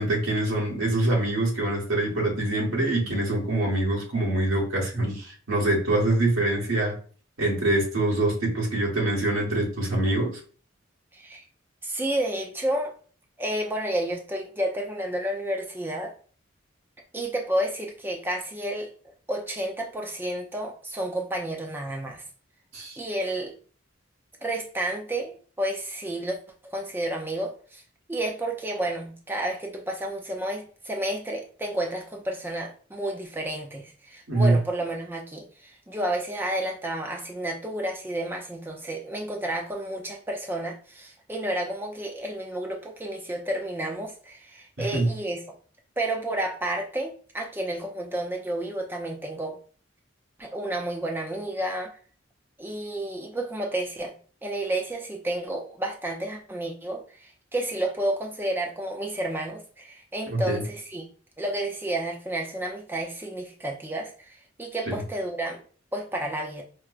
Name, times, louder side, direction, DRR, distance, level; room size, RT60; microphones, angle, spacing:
voice 1, 0.0-6.9 7.4-10.3 22.7-23.0 34.3-34.6 44.8-45.1 60.3-60.6 64.9-65.0, right 2 dB, 85° right, -4 dB, 1.3 m, -24 dB
voice 2, 11.1-11.4 11.8-12.9 13.4-16.1 17.1-22.2 23.0-23.5 24.4-26.4 26.6-27.8 28.1-45.4 46.0-49.6 50.4-51.9 52.6-54.1 54.4-61.1 61.4-65.6 65.9-66.6, right 1 dB, 10° right, 1 dB, 0.4 m, -31 dB
4.5 x 2.0 x 2.4 m, 0.41 s
head